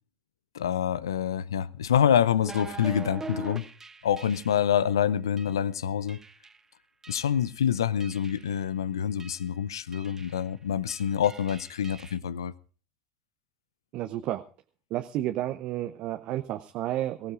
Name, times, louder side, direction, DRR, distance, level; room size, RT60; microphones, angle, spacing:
voice 1, 0.5-3.7 4.0-6.2 7.1-12.5, left 9 dB, 80° left, 0.6 m, -26 dB
sound 1, 2.4-4.7 5.4-5.6 6.1-6.6 7.0-7.5 8.0-8.6 9.2-9.5 9.9-10.5 10.9-12.2, right 4 dB, 20° right, 1.3 m, -43 dB
voice 2, 13.9-14.4 14.9-17.3, right 13 dB, 55° right, 0.7 m, -31 dB
22.5 x 15.5 x 2.5 m
figure-of-eight pair, 70°, 2 cm